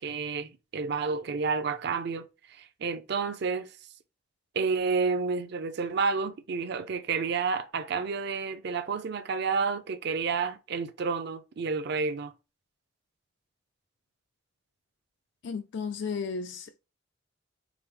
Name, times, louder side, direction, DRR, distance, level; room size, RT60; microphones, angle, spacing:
voice 1, 0.0-3.7 4.5-12.3, right 5 dB, 60° right, 0.5 m, -30 dB
voice 2, 15.4-16.8, left 5 dB, 65° left, 0.3 m, -34 dB
4.8 x 2.0 x 3.2 m
head